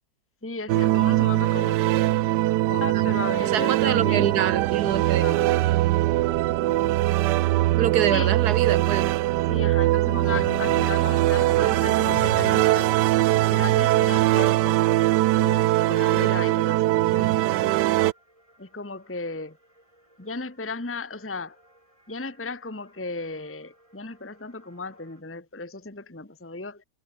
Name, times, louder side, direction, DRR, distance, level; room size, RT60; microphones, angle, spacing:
voice 1, 0.4-1.9 2.7-4.3 5.2-5.4 8.1-8.3 9.5-12.9 13.5-14.9 15.4-17.8 18.6-19.6 20.2-21.6 22.1-26.8, left 3 dB, 10° left, 1.4 m, -35 dB
sound 1, 0.7-18.1, right 16 dB, 80° right, 1.2 m, -21 dB
voice 2, 3.5-5.2 7.7-9.2, right 9 dB, 65° right, 1.6 m, -25 dB
sound 2, 6.5-25.2, right 1 dB, 20° right, 5.6 m, -62 dB
sound 3, 10.3-12.7, left 7 dB, 45° left, 1.1 m, -38 dB
omnidirectional pair, 1.8 m